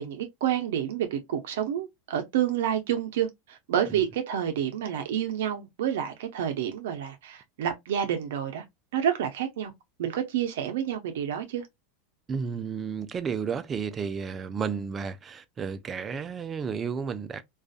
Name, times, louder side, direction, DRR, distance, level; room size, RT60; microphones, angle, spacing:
voice 1, 0.0-8.6 8.9-9.7 10.0-11.6, right 9 dB, 80° right, 0.5 m, -29 dB
voice 2, 12.3-17.4, right 6 dB, 25° right, 0.4 m, -32 dB
2.5 x 2.3 x 2.4 m
supercardioid pair, 125°, 0 cm